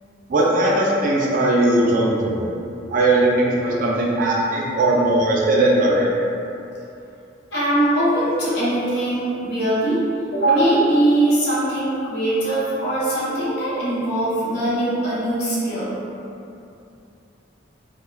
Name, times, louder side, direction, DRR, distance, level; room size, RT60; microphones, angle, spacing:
voice 1, 0.3-2.4 2.9-6.1, right 1 dB, 45° right, -4 dB, 0.4 m, -19 dB
voice 2, 7.5-10.0 10.3-16.0, right 1 dB, 60° left, -9 dB, 0.8 m, -21 dB
2.2 x 2.1 x 3.1 m, 2.7 s
head